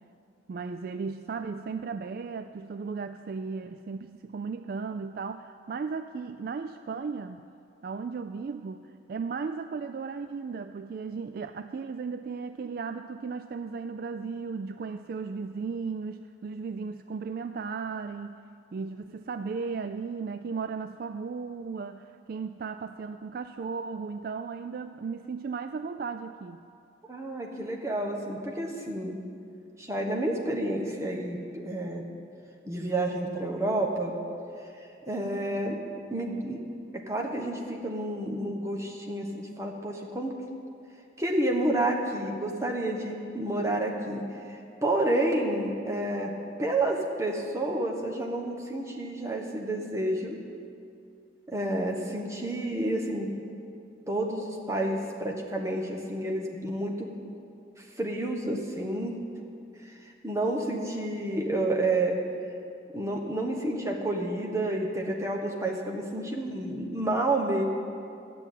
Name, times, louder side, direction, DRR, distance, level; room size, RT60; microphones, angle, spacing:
voice 1, 0.5-7.5 7.8-18.4 18.7-26.6, right 5 dB, 50° right, 9 dB, 0.3 m, -35 dB
voice 2, 27.1-29.2 29.8-32.1 32.6-34.1 35.0-35.8 36.1-36.6 36.9-40.3 41.2-46.3 46.6-50.4 51.5-53.5 54.1-57.1 58.0-59.1 59.8-62.2 62.9-67.6, right 1 dB, 15° right, 1 dB, 1.2 m, -30 dB
12.5 x 6.8 x 9.1 m, 2.5 s
head